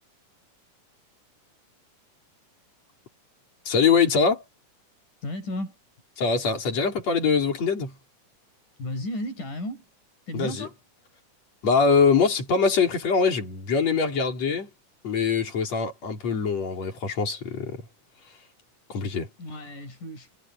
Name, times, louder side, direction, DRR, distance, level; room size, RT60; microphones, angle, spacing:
voice 1, 3.7-4.4 6.2-7.9 10.3-10.7 11.6-14.7 15.0-17.8 18.9-19.3, left 5 dB, 55° left, 5.7 m, -23 dB
voice 2, 5.2-5.7 8.8-9.8 10.3-10.7 19.4-20.4, left 1 dB, 85° left, 7.9 m, -34 dB
omnidirectional pair, 3.5 m